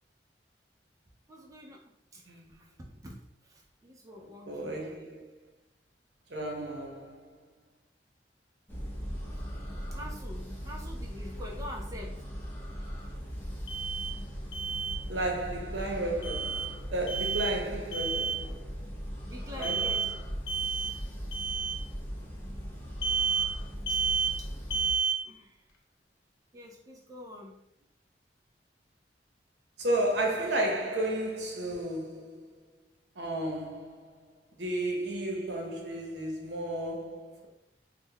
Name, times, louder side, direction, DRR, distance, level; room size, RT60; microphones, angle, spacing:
voice 1, 1.3-1.8 2.1-2.2 2.6-5.2 9.9-12.2 19.2-20.1 23.9-24.0 24.4-24.5 25.2-25.5 26.5-27.5, left 1 dB, 20° right, 0.4 m, -46 dB
voice 2, 4.2-5.3 6.3-7.4 15.1-18.9 19.5-20.1 29.8-32.5 33.2-37.5, right 1 dB, 70° right, 0.8 m, -33 dB
sound 1, 8.7-24.9, equal, 10° left, 0.7 m, -39 dB
Alarm, 13.7-14.1 14.5-15.0 16.2-16.7 17.1-17.6 17.9-18.4 19.6-20.1 20.5-20.9 21.3-21.7 23.0-23.5 23.9-24.3 24.7-25.2, right 6 dB, 70° left, 0.5 m, -30 dB
3.6 x 2.1 x 3.3 m
head